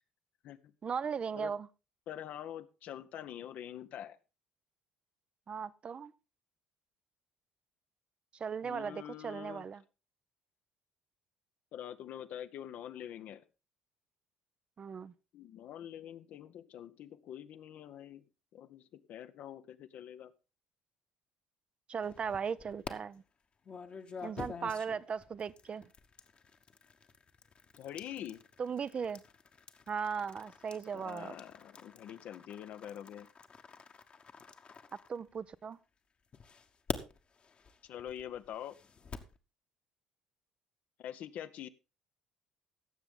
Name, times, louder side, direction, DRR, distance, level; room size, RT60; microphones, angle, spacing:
voice 1, 0.8-1.7 5.5-6.1 8.3-9.8 14.8-15.1 21.9-23.2 24.2-25.9 28.6-29.2 29.9-31.3 35.1-35.8, right 6 dB, 40° right, 0.6 m, -37 dB
voice 2, 2.1-4.2 8.6-9.7 11.7-13.4 15.3-18.2 18.5-20.3 27.8-28.4 30.9-33.3 37.8-38.8 41.0-41.7, left 10 dB, 60° left, 0.8 m, -45 dB
sound 1, 22.0-22.9 23.6-35.7 36.3-39.4, left 5 dB, 40° left, 1.2 m, -47 dB
16.5 x 7.0 x 3.7 m
hypercardioid pair, 60°, 3 cm